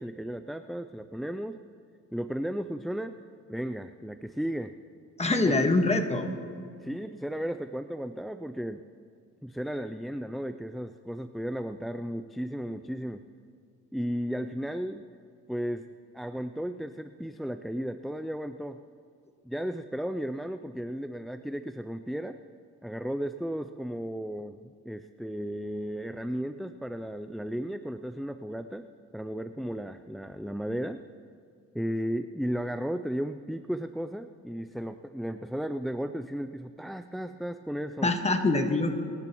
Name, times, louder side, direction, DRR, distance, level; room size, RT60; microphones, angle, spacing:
voice 1, 0.0-1.6 2.1-3.2 3.5-4.7 5.4-5.7 6.8-8.8 9.4-13.2 13.9-15.1 15.5-18.8 19.5-22.4 22.8-28.9 29.1-31.0 31.7-38.1, equal, ahead, 9 dB, 0.3 m, -34 dB
voice 2, 5.2-6.3 38.0-39.0, left 2 dB, 20° left, 5 dB, 1.5 m, -24 dB
29.0 x 10.5 x 3.0 m, 2.3 s
cardioid pair, 90°, 30 cm